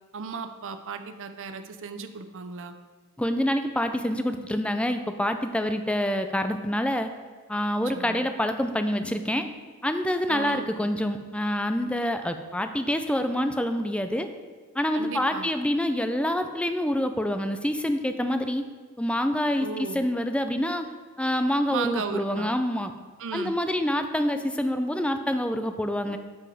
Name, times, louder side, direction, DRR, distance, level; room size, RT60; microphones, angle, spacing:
voice 1, 0.1-2.7 7.9-8.3 10.3-10.7 14.9-15.5 19.6-20.1 21.7-22.5 23.2-23.6, right 5 dB, 60° right, 8 dB, 0.6 m, -35 dB
voice 2, 3.2-7.1 7.5-9.5 9.8-14.3 14.7-18.6 19.0-20.9 21.2-22.9 23.3-26.2, left 1 dB, 5° left, 8 dB, 0.5 m, -26 dB
12.5 x 4.9 x 4.8 m, 1.4 s
head